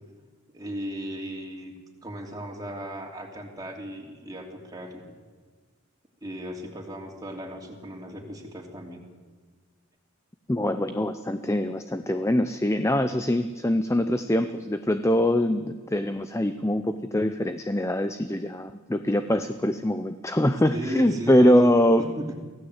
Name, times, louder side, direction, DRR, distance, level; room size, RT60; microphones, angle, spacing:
voice 1, 0.5-1.7 2.0-5.0 6.2-9.0 20.7-21.7 22.0-22.4, equal, 20° right, 0 dB, 3.1 m, -36 dB
voice 2, 10.5-22.0, left 1 dB, 15° left, 9 dB, 0.6 m, -23 dB
23.5 x 16.5 x 8.1 m, 1.4 s
head